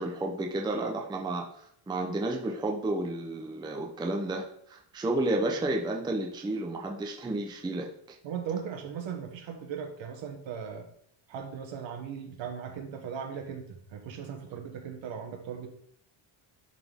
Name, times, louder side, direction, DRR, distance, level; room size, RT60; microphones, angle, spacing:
voice 1, 0.0-8.2, right 2 dB, 10° right, 1 dB, 0.6 m, -32 dB
voice 2, 8.2-10.9 11.3-15.7, right 7 dB, 65° right, 4 dB, 1.5 m, -38 dB
10.5 x 4.1 x 3.6 m, 0.69 s
cardioid pair, 160°, 50 cm